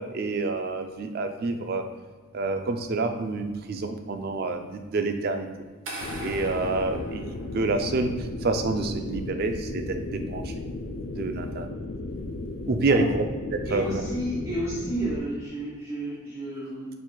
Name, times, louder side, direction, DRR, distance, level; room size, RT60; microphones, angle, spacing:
voice 1, 0.0-1.8 2.3-5.5 6.2-7.2 7.5-8.1 8.4-10.4 11.2-11.7 12.7-13.2 13.5-13.8, right 3 dB, 50° right, 6 dB, 0.4 m, -27 dB
sound 1, 5.8-7.9, right 1 dB, 75° right, 0.9 m, -40 dB
sound 2, 6.0-15.2, left 2 dB, 55° left, 0.3 m, -35 dB
voice 2, 13.6-16.9, right 1 dB, 10° right, -12 dB, 1.2 m, -31 dB
4.4 x 4.1 x 2.2 m, 1.4 s
head